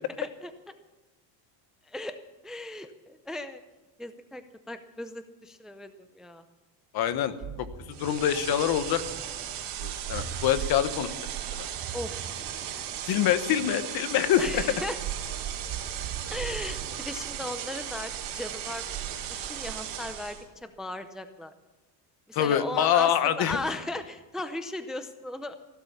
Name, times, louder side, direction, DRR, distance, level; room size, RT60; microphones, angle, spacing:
voice 1, 0.2-0.7 1.9-2.2 2.4-3.6 4.0-6.4 11.9-12.6 14.4-15.0 16.3-19.0 19.3-21.5 22.3-25.5, left 2 dB, ahead, 10 dB, 0.6 m, -37 dB
voice 2, 6.9-9.0 9.8-11.1 11.5-11.7 13.1-14.6 22.3-23.6, left 10 dB, 55° left, 12 dB, 1.2 m, -25 dB
Ocean, 7.0-17.7, right 6 dB, 45° right, 1.9 m, -44 dB
sound 1, 7.9-20.4, right 10 dB, 65° right, 3.6 m, -36 dB
16.0 x 12.5 x 7.1 m, 1.2 s
cardioid pair, 140°, 45 cm